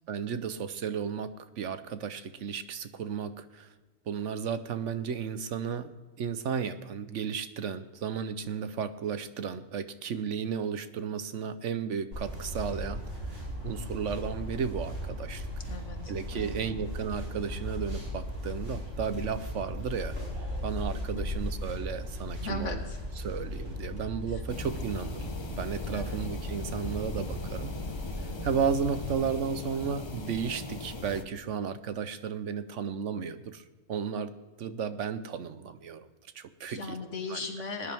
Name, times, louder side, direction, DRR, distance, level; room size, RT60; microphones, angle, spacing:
voice 1, 0.1-3.7 4.1-5.9 6.2-15.5 16.1-20.2 20.6-22.8 23.2-25.3 25.6-27.7 28.4-34.3 34.6-36.1 36.3-37.0 37.3-37.4, right 7 dB, 70° right, 11 dB, 1.1 m, -34 dB
sound 1, 12.1-29.1, left 1 dB, 50° right, 4.9 m, -37 dB
voice 2, 15.7-16.7 21.1-21.2 22.4-23.0 25.9-26.2 36.7-37.9, left 3 dB, 70° left, 4 dB, 1.9 m, -38 dB
sound 2, 24.5-31.2, left 3 dB, 25° left, 0.7 m, -40 dB
20.5 x 10.0 x 3.5 m, 1.3 s
omnidirectional pair, 1.3 m